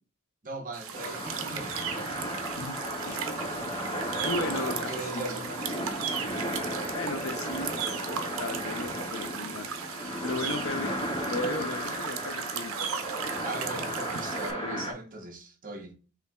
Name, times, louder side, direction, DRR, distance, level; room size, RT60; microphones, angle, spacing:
voice 1, 0.4-1.9 4.3-5.8 13.4-15.9, right 2 dB, 40° right, 0.8 m, -39 dB
sound 1, 0.7-14.5, right 7 dB, 80° right, 0.5 m, -37 dB
sound 2, 0.9-14.9, equal, 25° left, 1.3 m, -34 dB
voice 2, 4.1-5.4 6.9-7.7 8.0-9.7 10.2-10.9 11.2-12.9 14.6-14.9, left 2 dB, 75° left, 0.7 m, -35 dB
7.0 x 2.7 x 2.2 m
head